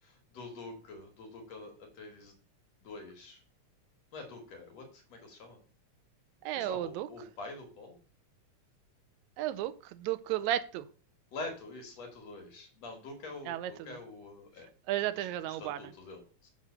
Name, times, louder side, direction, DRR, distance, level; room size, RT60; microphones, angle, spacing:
voice 1, 0.0-2.4 2.8-3.4 4.1-5.6 6.5-8.0 11.3-14.7 15.2-16.5, left 2 dB, 60° left, 3 dB, 2.6 m, -46 dB
voice 2, 6.4-7.1 9.4-10.9 13.5-14.0 14.9-15.8, right 12 dB, 80° right, 13 dB, 1.8 m, -33 dB
7.4 x 3.8 x 6.5 m, 0.38 s
omnidirectional pair, 3.4 m